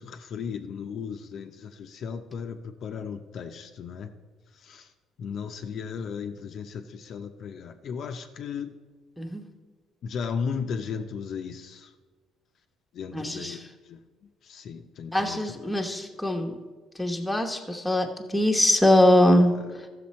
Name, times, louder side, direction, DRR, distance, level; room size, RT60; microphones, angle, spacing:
voice 1, 0.0-4.1 4.5-4.9 5.2-8.7 10.0-11.9 12.9-13.6 13.8-16.1 19.5-19.8, left 6 dB, 55° left, 5 dB, 0.6 m, -36 dB
voice 2, 13.1-13.6 15.1-16.6 17.0-19.5, left 1 dB, 5° left, 2 dB, 1.0 m, -22 dB
13.5 x 6.5 x 4.3 m, 1.4 s
cardioid pair, 100°, 0 cm